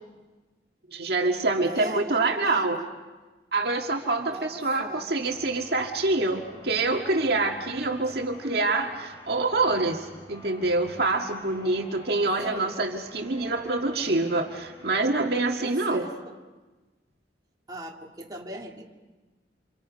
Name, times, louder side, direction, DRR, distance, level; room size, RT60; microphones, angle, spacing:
voice 1, 0.9-2.8 3.5-16.0, right 2 dB, 60° right, 2 dB, 1.9 m, -26 dB
voice 2, 1.6-2.9 4.3-5.1 8.1-8.2 12.4-12.7 15.6-16.3 17.7-18.9, right 1 dB, 20° right, -1 dB, 2.5 m, -39 dB
sound 1, 5.2-15.5, left 1 dB, 20° left, 6.0 m, -49 dB
29.5 x 27.5 x 5.3 m, 1.2 s
head